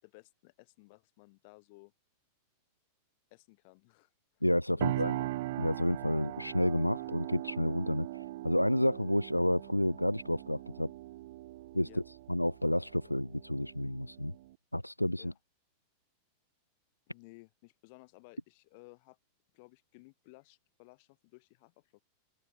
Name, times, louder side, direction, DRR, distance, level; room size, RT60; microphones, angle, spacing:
voice 1, 0.0-1.9 3.3-4.4 4.7-5.3 11.9-12.0 15.2-15.3 17.1-19.2 19.5-22.0, left 28 dB, 45° left, 4.7 m, -58 dB
voice 2, 4.4-5.2 5.6-10.9 11.7-12.0 12.3-14.3 14.7-15.3, left 1 dB, 90° left, 0.5 m, -30 dB
sound 1, 4.8-14.5, right 17 dB, 55° right, 1.1 m, -40 dB
open air
figure-of-eight pair, 90°, 0 cm